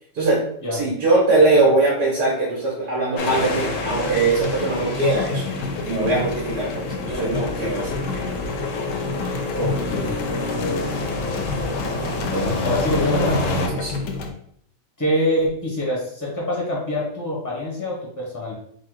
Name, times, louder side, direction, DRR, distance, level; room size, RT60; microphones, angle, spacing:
voice 1, 0.7-5.4 5.9-8.3 11.5-11.6 12.4-12.5 13.7-14.1, right 2 dB, 75° right, -5 dB, 1.9 m, -21 dB
sound 1, 3.2-13.7, left 2 dB, 60° left, 0.9 m, -27 dB
sound 2, 3.8-14.3, left 4 dB, 80° left, 1.2 m, -31 dB
voice 2, 9.5-10.1 12.2-13.4 15.0-18.5, left 1 dB, 15° left, -5 dB, 0.7 m, -24 dB
4.1 x 2.3 x 4.6 m, 0.67 s
omnidirectional pair, 1.7 m